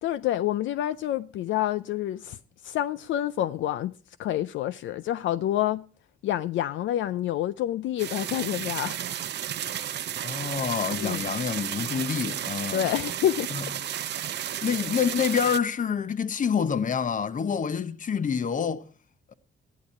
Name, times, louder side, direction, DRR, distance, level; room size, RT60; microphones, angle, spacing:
voice 1, 0.0-2.4 2.6-3.9 4.2-5.8 6.2-9.0 10.9-11.3 12.7-13.5, left 12 dB, 75° left, 0.5 m, -28 dB
sound 1, 8.0-15.6, right 10 dB, 60° right, 0.7 m, -33 dB
voice 2, 10.2-12.9 13.5-13.7 14.6-18.8, left 7 dB, 40° left, 0.9 m, -27 dB
12.5 x 11.0 x 4.6 m
cardioid pair, 90°, 20 cm